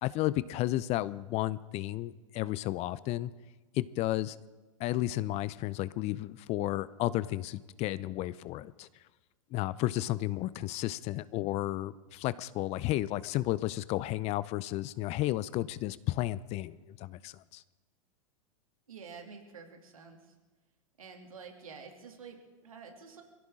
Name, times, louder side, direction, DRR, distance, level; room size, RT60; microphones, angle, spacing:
voice 1, 0.0-3.3 3.7-4.4 4.8-8.9 9.5-17.6, left 16 dB, 40° left, 18 dB, 0.5 m, -33 dB
voice 2, 18.9-20.3 21.0-23.2, right 5 dB, 80° right, 3 dB, 2.8 m, -49 dB
23.5 x 16.0 x 3.7 m, 1.2 s
hypercardioid pair, 100°, 18 cm